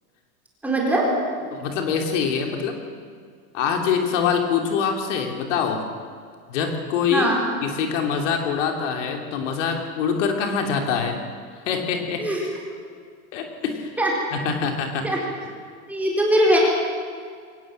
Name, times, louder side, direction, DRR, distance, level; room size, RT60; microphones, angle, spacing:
voice 1, 0.6-1.5 7.1-7.4 12.2-12.4 14.0-14.1 15.0-15.2 15.9-16.6, right 1 dB, 5° right, -3 dB, 4.1 m, -21 dB
voice 2, 1.5-2.8 3.5-5.8 6.5-7.3 7.6-11.2 11.6-12.3 13.3-14.0 14.3-15.1, left 6 dB, 55° left, 4 dB, 3.0 m, -24 dB
23.0 x 19.0 x 7.5 m, 2.1 s
supercardioid pair, 165°, 43 cm